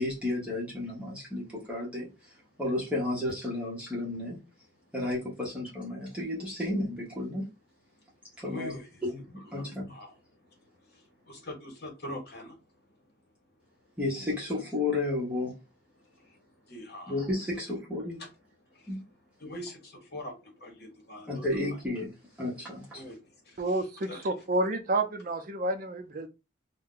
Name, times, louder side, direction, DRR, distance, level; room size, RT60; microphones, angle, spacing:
voice 1, 0.0-2.1 2.6-4.4 4.9-7.5 8.4-8.8 9.0-9.9 14.0-15.5 17.1-18.2 18.9-19.0 21.3-22.1 22.4-23.0, left 2 dB, 5° right, 1.0 m, -32 dB
voice 2, 8.4-9.0 9.4-10.5 10.9-12.9 16.0-17.3 18.7-21.5 22.9-24.2, left 1 dB, 50° left, 1.1 m, -45 dB
voice 3, 23.6-26.3, right 2 dB, 40° right, 0.5 m, -29 dB
2.7 x 2.2 x 3.7 m
head